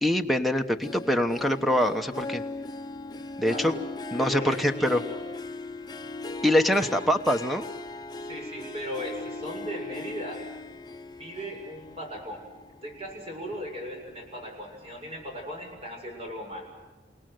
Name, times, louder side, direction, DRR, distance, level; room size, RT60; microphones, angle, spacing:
voice 1, 0.0-2.4 3.4-3.8 4.1-5.0 6.4-7.7, left 1 dB, ahead, 7 dB, 1.1 m, -24 dB
Harp, 0.8-13.5 14.0-14.4 14.8-14.9, left 2 dB, 25° left, 0.8 m, -39 dB
voice 2, 3.4-3.8 4.2-5.2 6.8-6.9 8.3-10.4 11.2-12.4 12.8-16.7, equal, 35° right, 1 dB, 7.1 m, -37 dB
29.0 x 18.5 x 7.8 m, 1.2 s
head